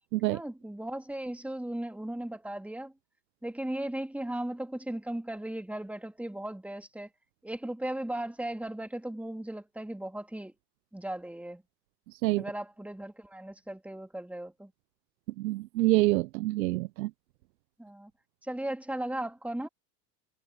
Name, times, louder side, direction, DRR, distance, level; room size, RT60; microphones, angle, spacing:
voice 1, 0.2-2.9 3.4-7.1 7.4-10.5 10.9-11.6 12.4-14.7 17.8-18.1 18.4-19.7, right 1 dB, 5° right, 2.9 m, -37 dB
voice 2, 12.1-12.4 15.4-17.1, right 18 dB, 85° right, 0.6 m, -27 dB
hypercardioid pair, 90°, 49 cm